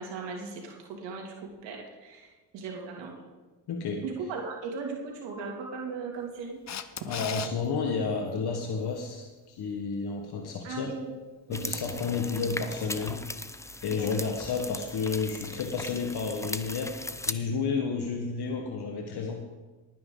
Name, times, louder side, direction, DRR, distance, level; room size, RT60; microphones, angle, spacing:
voice 1, 0.0-3.1 4.0-6.6 10.6-11.1 11.5-11.7 14.0-14.1, right 4 dB, 85° right, 0 dB, 2.7 m, -38 dB
voice 2, 3.7-4.1 7.0-10.9 11.5-13.3 13.8-19.5, left 5 dB, 65° left, 2 dB, 1.5 m, -31 dB
Camera, 6.7-7.5 14.2-14.3, left 8 dB, 40° left, 0.8 m, -36 dB
sound 1, 11.5-17.3, left 2 dB, 5° left, 0.6 m, -38 dB
19.0 x 9.4 x 3.9 m, 1.2 s
cardioid pair, 80°, 43 cm